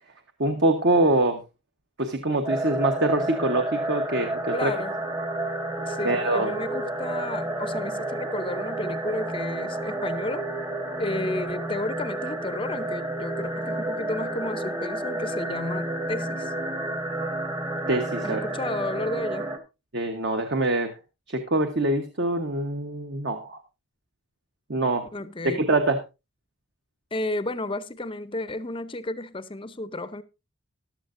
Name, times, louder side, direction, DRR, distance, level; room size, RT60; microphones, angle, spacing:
voice 1, 0.4-1.4 2.0-4.7 6.0-6.5 17.9-18.4 19.9-20.9 21.3-23.6 24.7-25.1 25.4-26.0, right 2 dB, 50° right, 1.1 m, -24 dB
sound 1, 2.5-19.6, right 1 dB, 20° right, 1.0 m, -30 dB
voice 2, 4.5-4.9 5.9-10.4 11.0-16.5 18.2-19.6 25.1-25.6 27.1-30.2, left 2 dB, 25° left, 0.6 m, -32 dB
14.5 x 11.5 x 2.6 m
head